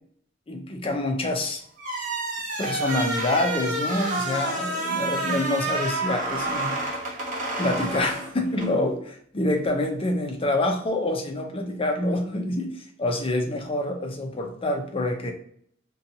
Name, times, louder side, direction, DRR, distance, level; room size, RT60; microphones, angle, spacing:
voice 1, 0.5-1.6 2.6-6.8 7.6-15.3, left 1 dB, 30° left, 4 dB, 0.5 m, -26 dB
sound 1, 1.8-8.7, right 2 dB, 45° right, 0.8 m, -29 dB
2.7 x 2.3 x 2.6 m, 0.63 s
head